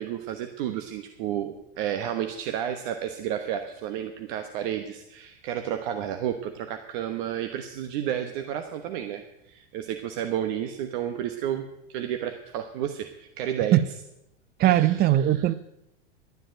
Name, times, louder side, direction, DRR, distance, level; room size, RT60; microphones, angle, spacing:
voice 1, 0.0-9.2 9.5-13.8 14.6-15.0, right 10 dB, 55° right, 1.2 m, -31 dB
voice 2, 14.6-15.5, right 13 dB, 30° right, 0.6 m, -19 dB
12.5 x 7.7 x 8.9 m
hypercardioid pair, 105°, 31 cm